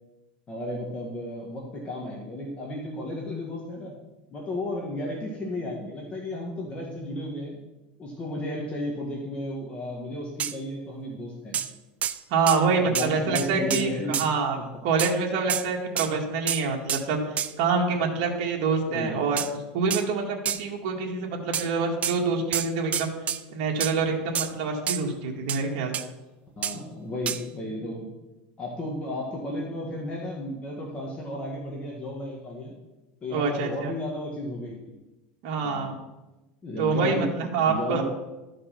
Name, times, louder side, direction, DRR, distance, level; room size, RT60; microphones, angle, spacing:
voice 1, 0.5-3.9 4.3-7.6 8.0-11.6 12.7-14.2 14.6-14.7 18.9-19.4 26.6-28.1 28.6-32.7 33.2-34.9 35.6-35.9 36.6-37.3 37.6-38.0, left 1 dB, 25° left, -2 dB, 1.7 m, -33 dB
sound 1, 10.4-10.5 11.5-11.7 12.0-12.2 12.5-12.6 12.9-13.1 13.3-14.3 15.0-15.1 15.5-15.7 16.0-16.1 16.5-16.6 16.9-17.0 17.4-17.5 19.4-19.5 19.9-20.0 20.5-20.6 21.5-21.7 22.0-22.2 22.5-23.4 23.8-23.9 24.3-24.5 24.9-25.0 25.5-25.6 25.9-26.1 26.6-26.8 27.3-27.4, right 9 dB, 30° right, 0.5 m, -28 dB
voice 2, 12.3-14.6 14.8-17.2 17.6-19.4 19.7-23.1 23.5-26.0 33.3-33.9 35.4-36.0 36.8-38.0, right 4 dB, 60° right, 0 dB, 1.9 m, -26 dB
12.5 x 5.2 x 5.8 m, 1.1 s
supercardioid pair, 140°, 5 cm